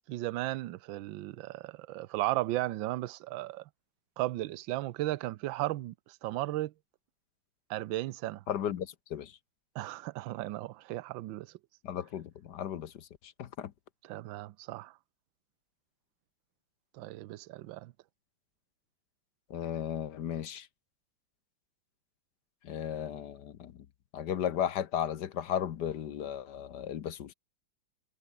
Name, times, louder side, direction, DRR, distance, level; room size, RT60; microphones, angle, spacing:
voice 1, 0.1-3.6 4.2-6.7 7.7-8.4 9.7-11.5 14.0-15.0 16.9-17.9, right 16 dB, 80° right, 1.4 m, -35 dB
voice 2, 8.5-9.3 11.8-13.1 13.4-13.7 19.5-20.7 22.6-23.7 24.1-27.3, left 9 dB, 60° left, 1.5 m, -35 dB
omnidirectional pair, 2.1 m